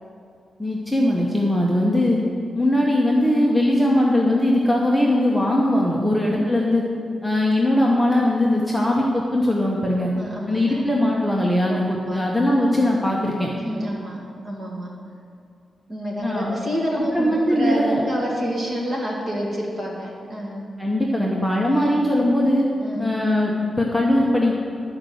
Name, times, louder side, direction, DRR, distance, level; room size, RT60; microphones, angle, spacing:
voice 1, 0.6-2.2 2.5-6.8 7.2-10.1 10.5-13.5 16.2-16.5 17.1-18.0 20.8-22.7 23.0-24.6, left 1 dB, ahead, -3 dB, 0.9 m, -20 dB
voice 2, 6.0-6.4 10.0-10.8 11.7-12.2 13.6-14.2 14.4-14.9 15.9-20.6 22.8-23.1, equal, 30° right, -3 dB, 2.0 m, -28 dB
11.5 x 5.1 x 7.7 m, 2.4 s
wide cardioid pair, 150°, 0 cm